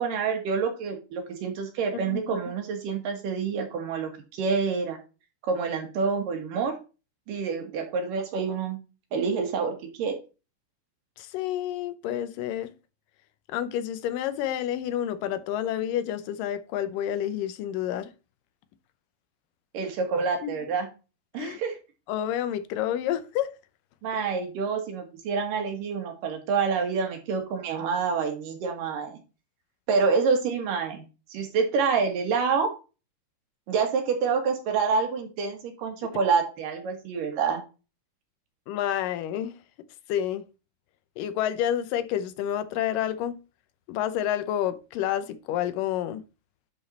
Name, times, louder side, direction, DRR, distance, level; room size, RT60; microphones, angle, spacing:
voice 1, 0.0-5.0 5.5-6.8 7.3-8.8 9.1-10.1 19.7-20.9 21.3-21.7 24.0-29.2 29.9-31.0 31.3-32.7 33.7-37.6, right 5 dB, 85° right, 3.3 m, -27 dB
voice 2, 2.0-2.4 11.2-12.7 13.5-18.1 20.4-20.7 21.4-21.6 22.1-23.5 38.7-39.5 40.1-40.5 41.2-43.4 43.9-46.2, left 11 dB, 90° left, 2.4 m, -29 dB
10.5 x 4.2 x 4.1 m
omnidirectional pair, 3.7 m